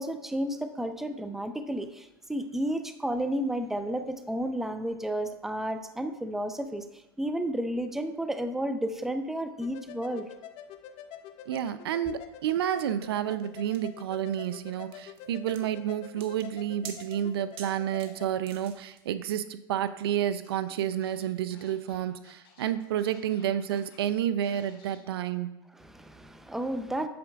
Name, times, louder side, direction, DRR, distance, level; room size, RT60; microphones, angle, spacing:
voice 1, 0.0-10.3 12.1-12.2 25.7-27.1, right 1 dB, 5° right, 8 dB, 0.5 m, -32 dB
sound 1, 9.6-18.3, left 9 dB, 50° left, 0.6 m, -47 dB
voice 2, 11.5-25.5, right 10 dB, 80° right, 13 dB, 0.4 m, -30 dB
sound 2, 12.8-19.0, right 7 dB, 50° right, 1.0 m, -48 dB
Scratching (performance technique), 20.4-20.5 20.8-24.1 24.4-25.0, left 5 dB, 75° left, 1.9 m, -57 dB
8.5 x 6.9 x 2.3 m, 1.0 s
hypercardioid pair, 105°, 12 cm